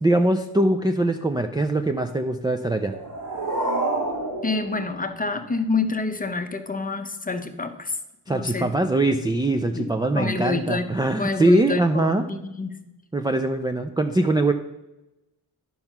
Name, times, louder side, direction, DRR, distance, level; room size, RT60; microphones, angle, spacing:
voice 1, 0.0-2.9 8.3-12.2 13.1-14.5, right 2 dB, 10° right, 6 dB, 0.4 m, -22 dB
sound 1, 2.7-5.7, right 2 dB, 85° right, 2.7 m, -29 dB
voice 2, 4.4-8.0 8.3-8.7 9.7-9.9 10.1-10.9 11.2-12.8, left 3 dB, 20° left, 7 dB, 0.8 m, -27 dB
10.5 x 5.5 x 5.9 m, 0.95 s
wide cardioid pair, 150°, 39 cm